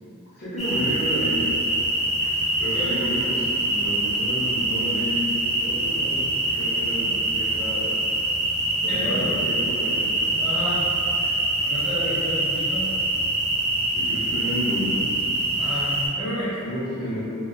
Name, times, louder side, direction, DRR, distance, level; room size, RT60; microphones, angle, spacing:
voice 1, 0.3-1.5 2.6-7.9 8.8-10.0 13.9-15.2 16.6-17.2, equal, 45° left, -13 dB, 0.6 m, -31 dB
sound 1, 0.6-16.1, right 2 dB, ahead, 0.5 m, -24 dB
voice 2, 8.8-9.4 10.1-10.8 11.6-12.9 15.6-16.6, left 1 dB, 20° left, -13 dB, 1.0 m, -31 dB
2.7 x 2.1 x 2.2 m, 2.7 s
head